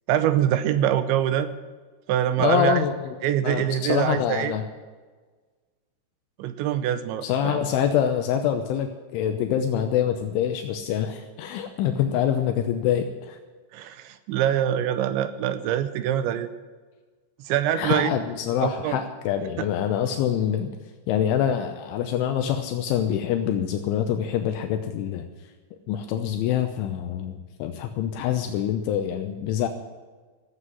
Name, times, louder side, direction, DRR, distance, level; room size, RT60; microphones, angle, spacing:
voice 1, 0.1-1.5 2.1-2.8 3.2-4.5 6.4-7.6 13.7-16.5 17.4-18.2 18.6-19.0 19.6-19.7, right 11 dB, 80° right, 11 dB, 2.9 m, -24 dB
voice 2, 2.4-3.1 3.4-4.6 7.2-13.4 17.8-20.7 21.1-25.2 25.9-29.7, left 9 dB, 80° left, 5 dB, 3.3 m, -25 dB
14.5 x 8.1 x 9.8 m, 1.4 s
omnidirectional pair, 5.7 m